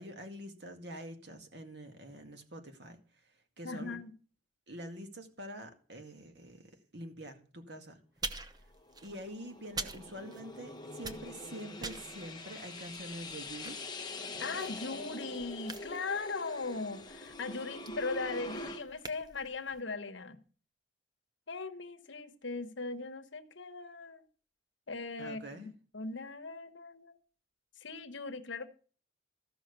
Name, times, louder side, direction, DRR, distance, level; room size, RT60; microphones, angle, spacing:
voice 1, 0.0-3.0 3.6-4.0 4.7-8.0 9.0-13.8 25.2-25.7, right 1 dB, 60° right, 2.1 m, -46 dB
voice 2, 3.6-4.1 14.4-20.4 21.5-24.2 24.9-27.2 27.8-28.7, left 3 dB, 70° left, 1.2 m, -39 dB
sound 1, 8.2-10.7 10.9-19.8, right 3 dB, 20° right, 0.8 m, -46 dB
sound 2, 8.7-18.8, left 2 dB, 20° left, 1.0 m, -45 dB
14.0 x 6.0 x 6.8 m
head